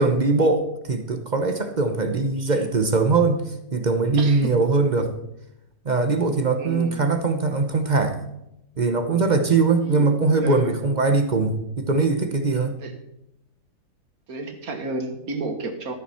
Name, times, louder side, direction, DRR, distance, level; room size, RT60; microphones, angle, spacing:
voice 1, 0.0-5.1 5.8-8.2 8.8-12.8, right 3 dB, 35° right, 7 dB, 0.8 m, -21 dB
voice 2, 4.2-4.5 6.6-7.0 9.8-10.1 10.4-10.8 12.8-12.9 14.3-15.9, right 2 dB, 65° right, 6 dB, 1.9 m, -31 dB
13.5 x 9.0 x 4.3 m, 0.84 s
omnidirectional pair, 1.7 m